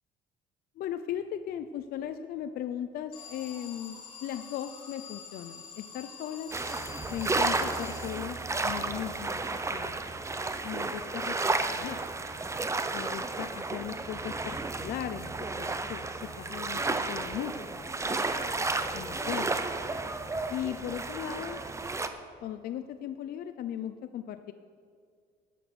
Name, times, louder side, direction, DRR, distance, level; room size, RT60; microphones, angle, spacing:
voice 1, 0.8-6.5 7.1-9.4 9.7-10.0 10.6-12.0 12.9-18.2 18.9-19.6 20.5-21.6 22.4-24.5, left 10 dB, 65° left, 9 dB, 0.6 m, -38 dB
Alarm, 3.1-8.7, left 6 dB, 30° left, 3.6 m, -47 dB
sound 1, 6.5-22.1, right 3 dB, 15° right, 0.8 m, -32 dB
14.0 x 9.1 x 6.0 m, 2.2 s
cardioid pair, 110°, 17 cm